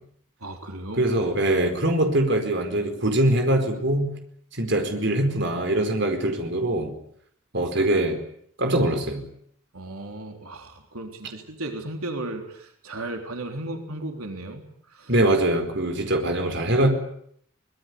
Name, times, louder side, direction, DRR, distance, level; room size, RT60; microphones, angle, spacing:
voice 1, 0.4-1.1 9.7-15.1, right 2 dB, 90° right, 4 dB, 3.9 m, -35 dB
voice 2, 1.0-4.1 4.6-6.9 7.5-8.2 8.6-9.2 15.1-16.9, right 1 dB, 55° right, 5 dB, 4.7 m, -22 dB
24.5 x 21.0 x 9.6 m, 0.68 s
head